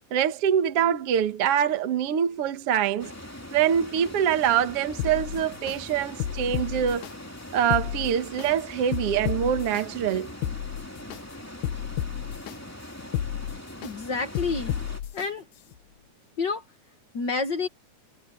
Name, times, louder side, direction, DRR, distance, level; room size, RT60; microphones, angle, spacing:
voice 1, 0.1-3.1 3.5-7.1 7.5-10.3, right 9 dB, 55° right, 2.1 m, -24 dB
sound 1, 3.0-15.0, left 1 dB, 5° left, 2.3 m, -42 dB
sound 2, 5.0-5.8 6.2-7.1 7.6-8.5 8.9-9.8 10.3-11.2 11.6-12.5 13.0-13.9 14.4-15.3 15.7-15.8, left 11 dB, 80° left, 2.5 m, -31 dB
voice 2, 13.8-14.7 15.1-15.4 16.4-16.6 17.1-17.7, left 4 dB, 45° left, 1.7 m, -28 dB
omnidirectional pair, 3.5 m